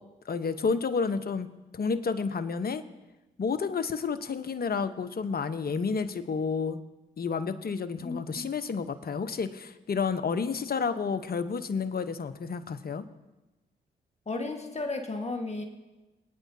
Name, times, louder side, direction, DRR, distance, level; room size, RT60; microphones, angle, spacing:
voice 1, 0.2-1.5 1.7-2.8 3.4-6.8 7.2-13.0, left 5 dB, 50° left, 11 dB, 1.0 m, -30 dB
voice 2, 8.0-8.4 14.3-15.6, left 3 dB, 30° left, 3 dB, 1.5 m, -34 dB
22.5 x 9.3 x 2.8 m, 1.1 s
hypercardioid pair, 45°, 21 cm